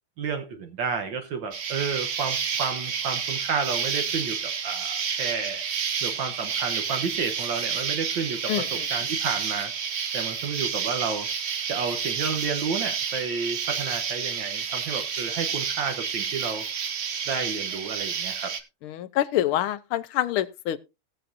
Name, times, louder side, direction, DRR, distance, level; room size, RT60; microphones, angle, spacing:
voice 1, 0.2-5.6 6.0-9.7 10.1-11.3 11.7-16.6 17.3-18.6, right 5 dB, 65° right, 1.5 m, -31 dB
Insect, 1.5-18.6, right 6 dB, 85° right, 0.5 m, -30 dB
voice 2, 8.5-8.8 18.8-20.8, left 13 dB, 80° left, 1.5 m, -26 dB
19.0 x 6.9 x 2.5 m
omnidirectional pair, 2.3 m